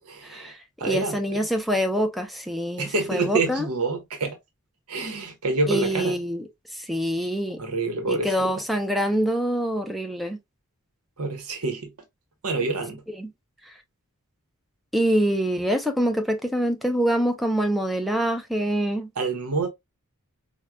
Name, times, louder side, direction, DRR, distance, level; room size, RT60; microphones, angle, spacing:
voice 1, 0.1-0.5 0.8-1.5 2.8-4.4 4.9-6.2 7.6-8.6 11.2-11.9 12.4-13.0 19.2-19.7, right 3 dB, 80° right, 0.9 m, -27 dB
voice 2, 0.8-3.6 5.7-6.4 6.7-7.6 8.1-10.4 13.2-13.3 14.9-19.1, equal, ahead, 0.4 m, -25 dB
4.5 x 2.2 x 2.2 m
head